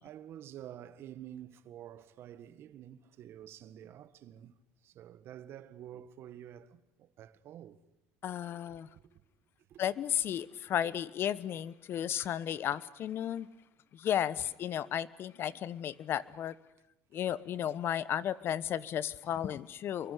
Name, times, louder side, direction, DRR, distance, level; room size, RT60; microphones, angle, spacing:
voice 1, 0.0-7.8 8.7-9.2 9.7-9.8 12.0-12.2 16.2-16.3, right 11 dB, 55° right, 1.8 m, -49 dB
voice 2, 8.2-8.9 9.8-13.5 13.9-16.5 17.1-20.1, left 10 dB, 50° left, 1.2 m, -34 dB
28.5 x 23.5 x 8.4 m
supercardioid pair, 100°, 5 cm